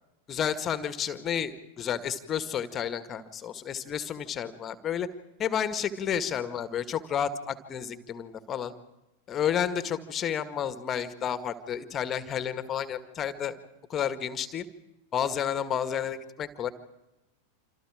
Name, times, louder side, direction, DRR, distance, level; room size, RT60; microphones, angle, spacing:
voice 1, 0.3-5.1 5.4-8.7 9.3-13.6 13.9-14.7 15.1-16.7, left 8 dB, 25° left, 11 dB, 1.9 m, -31 dB
27.5 x 27.0 x 5.1 m, 0.97 s
figure-of-eight pair, 90°, 0 cm